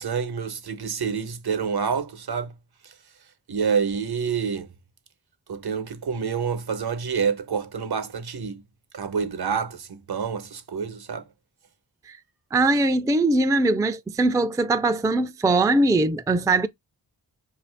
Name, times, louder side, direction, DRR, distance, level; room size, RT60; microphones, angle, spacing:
voice 1, 0.0-2.5 2.8-2.9 3.5-4.7 5.5-8.6 8.9-11.2, right 6 dB, 60° right, 0.9 m, -27 dB
voice 2, 12.5-16.7, right 2 dB, 10° right, 0.4 m, -21 dB
4.9 x 2.7 x 3.3 m
cardioid pair, 60°, 42 cm